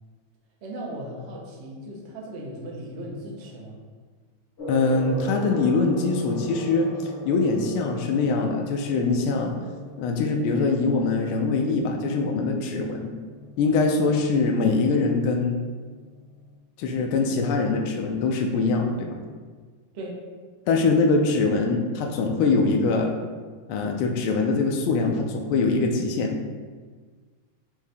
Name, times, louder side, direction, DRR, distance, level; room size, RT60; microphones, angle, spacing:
voice 1, 0.6-3.8 12.7-12.9 19.9-20.2, right 1 dB, 70° right, -2 dB, 0.6 m, -37 dB
Gong, 4.6-16.5, left 1 dB, 50° left, 0.8 m, -40 dB
voice 2, 4.7-9.5 10.0-13.1 13.6-15.6 16.8-19.2 20.7-23.1 23.7-26.4, left 3 dB, 85° left, 2 dB, 1.4 m, -23 dB
5.2 x 2.7 x 3.3 m, 1.5 s
omnidirectional pair, 2.3 m